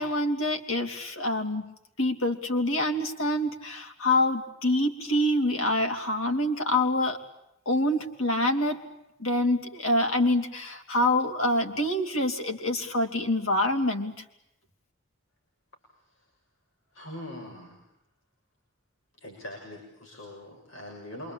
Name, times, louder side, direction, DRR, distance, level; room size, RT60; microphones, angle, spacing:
voice 1, 0.0-1.7 2.0-7.2 7.7-8.8 9.2-14.1, left 1 dB, 90° left, 4 dB, 3.5 m, -26 dB
voice 2, 16.9-17.8 19.2-21.3, left 1 dB, 75° left, 0 dB, 6.7 m, -42 dB
27.5 x 24.5 x 8.8 m, 0.83 s
head